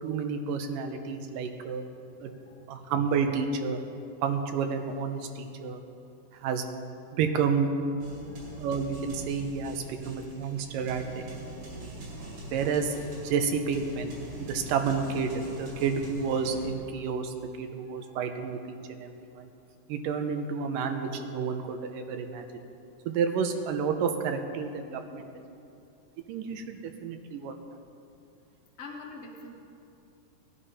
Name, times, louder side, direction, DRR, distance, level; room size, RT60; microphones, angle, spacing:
voice 1, 0.0-1.9 2.2-2.3 2.7-3.8 4.2-5.8 6.4-6.6 7.1-7.7 8.6-12.1 12.5-14.1 14.4-19.5 19.9-22.5 23.1-25.3 26.3-27.5, right 6 dB, 90° right, 6 dB, 2.5 m, -30 dB
sound 1, 8.0-16.7, right 1 dB, 70° right, 3.8 m, -43 dB
voice 2, 17.8-18.3 28.8-29.5, left 3 dB, 60° left, 0 dB, 0.6 m, -45 dB
18.5 x 10.5 x 4.2 m, 2.6 s
omnidirectional pair, 3.8 m